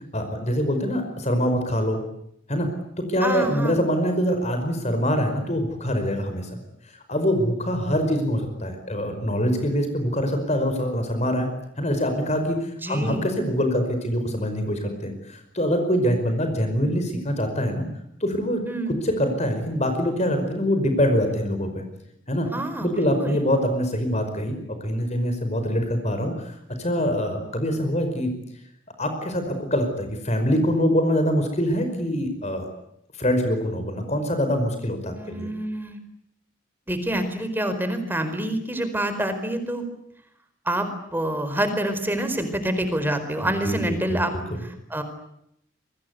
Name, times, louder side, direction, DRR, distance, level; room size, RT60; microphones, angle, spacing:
voice 1, 0.1-2.0 2.5-2.7 3.1-6.6 7.1-11.5 11.8-17.8 18.2-18.6 19.0-21.8 22.3-22.5 22.8-28.3 29.0-32.7 33.2-35.5 43.4-44.2 44.5-44.6, equal, 35° left, 7 dB, 5.2 m, -24 dB
voice 2, 3.2-3.8 12.8-13.2 18.7-18.9 22.5-23.4 35.1-36.0 36.9-39.8 40.6-44.3 44.6-45.0, right 1 dB, 10° right, 9 dB, 4.6 m, -27 dB
28.0 x 24.0 x 8.3 m, 0.76 s
head